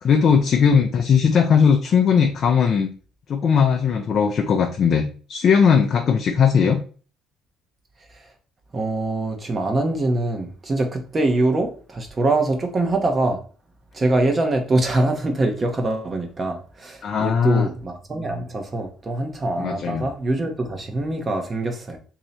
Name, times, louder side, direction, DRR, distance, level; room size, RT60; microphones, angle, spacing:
voice 1, 0.0-2.9 3.3-6.8 17.0-17.7 19.6-20.1, left 6 dB, 50° left, 0.5 m, -18 dB
voice 2, 8.7-13.4 13.9-22.0, right 2 dB, 30° right, 0.9 m, -23 dB
3.1 x 2.8 x 4.0 m
cardioid pair, 90°, 0 cm